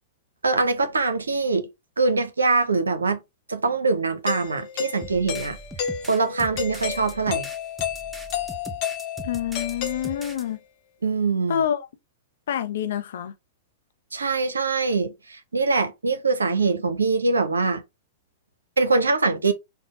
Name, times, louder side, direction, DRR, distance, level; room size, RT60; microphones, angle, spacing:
voice 1, 0.4-1.7 2.0-3.2 3.5-5.6 6.1-7.5 11.0-11.7 14.1-17.8 18.8-19.5, right 4 dB, 85° right, 0.6 m, -23 dB
Doorbell, 4.3-10.6, left 9 dB, 45° left, 0.9 m, -32 dB
sound 1, 5.0-10.4, right 2 dB, 5° right, 0.7 m, -40 dB
voice 2, 9.2-10.6 11.5-11.9 12.5-13.3, left 9 dB, 65° left, 0.5 m, -27 dB
3.6 x 2.1 x 3.6 m
figure-of-eight pair, 105°, 0 cm